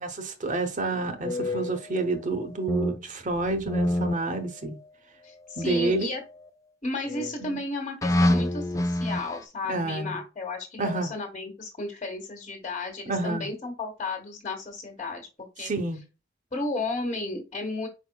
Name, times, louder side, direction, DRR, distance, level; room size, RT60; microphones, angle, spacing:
voice 1, 0.0-4.8 5.6-6.1 7.4-7.6 9.7-10.2 10.8-11.1 13.1-13.5 15.6-16.0, right 2 dB, 45° right, 0.9 m, -29 dB
sound 1, 1.2-3.0 3.3-4.8 5.6-6.5 7.1-7.5 8.0-9.4, left 1 dB, 20° left, 0.6 m, -28 dB
voice 2, 5.2-6.2 6.8-15.7 16.5-17.9, left 2 dB, 35° left, 1.3 m, -33 dB
5.0 x 4.6 x 2.3 m
head